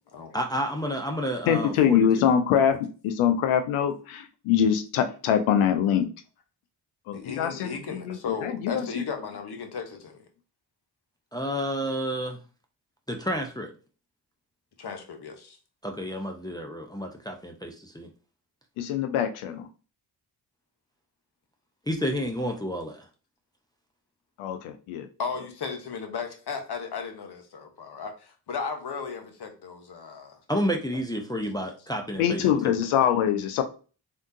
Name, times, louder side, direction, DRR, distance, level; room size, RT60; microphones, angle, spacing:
voice 1, 0.3-2.3 11.3-12.4 13.1-13.7 15.8-18.1 21.9-23.1 30.5-32.8, equal, 10° left, 0.6 m, -30 dB
voice 2, 1.5-6.1 7.1-8.9 18.8-19.7 24.4-25.1 32.2-33.6, left 8 dB, 80° left, 0.5 m, -24 dB
voice 3, 7.1-10.2 14.8-15.6 25.2-30.4, left 5 dB, 55° left, 1.0 m, -35 dB
3.5 x 2.7 x 2.6 m
supercardioid pair, 40°, 48 cm